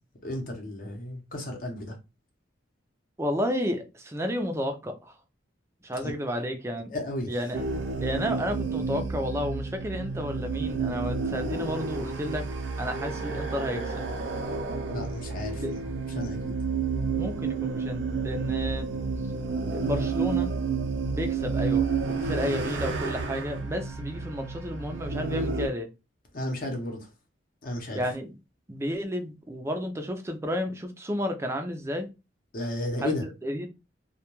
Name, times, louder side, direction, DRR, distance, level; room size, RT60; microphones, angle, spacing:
voice 1, 0.2-2.0 6.0-6.1 6.9-7.3 14.9-15.8 16.1-16.5 26.3-27.1 27.6-28.0 32.5-33.2, left 1 dB, 45° left, 0.7 m, -33 dB
voice 2, 3.2-5.2 5.8-7.0 7.3-7.6 8.0-12.5 12.8-14.0 15.6-15.7 17.2-18.9 19.7-20.5 21.1-25.9 27.9-28.4 28.7-32.1 33.0-33.1 33.4-33.7, equal, 15° right, 0.4 m, -32 dB
sound 1, 7.5-25.7, right 4 dB, 75° right, 0.5 m, -30 dB
2.2 x 2.2 x 3.0 m
head